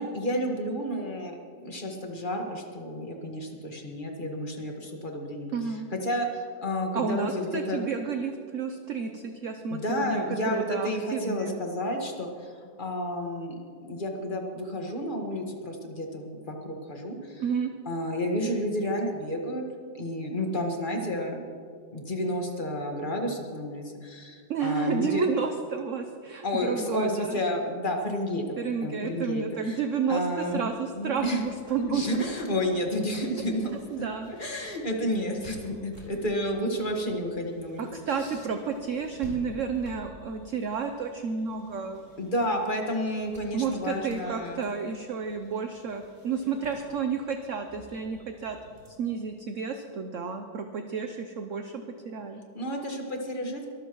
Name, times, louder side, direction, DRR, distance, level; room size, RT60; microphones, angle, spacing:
voice 1, 0.0-1.4 1.6-5.5 6.0-7.8 9.7-17.4 17.8-19.6 19.9-21.4 21.9-25.3 26.4-28.4 28.8-29.8 30.1-30.6 31.0-31.4 31.8-33.7 34.0-37.9 42.2-44.6 52.5-53.7, equal, 25° left, 1 dB, 1.7 m, -31 dB
voice 2, 5.5-5.9 6.9-11.5 17.4-17.7 24.5-27.4 28.6-32.0 33.9-34.3 37.8-42.1 43.5-48.6 48.9-52.4, right 6 dB, 55° right, 6 dB, 0.9 m, -31 dB
sound 1, 30.1-48.9, left 1 dB, 30° right, 4.5 m, -52 dB
23.5 x 14.0 x 3.1 m, 2.2 s
omnidirectional pair, 2.0 m